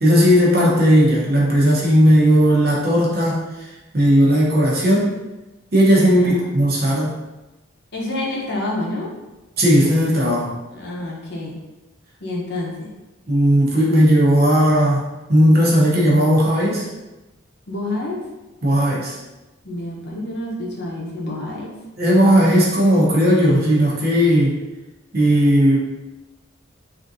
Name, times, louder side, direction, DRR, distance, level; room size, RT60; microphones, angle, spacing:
voice 1, 0.0-3.4 3.9-5.1 5.7-7.2 9.6-10.5 13.3-15.0 15.3-16.9 18.6-19.2 22.0-24.6 25.1-25.8, equal, 45° right, -4 dB, 0.8 m, -16 dB
voice 2, 6.2-6.5 7.9-9.1 10.7-11.5 12.2-12.9 17.7-18.2 19.6-21.8, left 1 dB, 50° left, -3 dB, 0.7 m, -28 dB
3.5 x 2.6 x 2.6 m, 1.1 s
head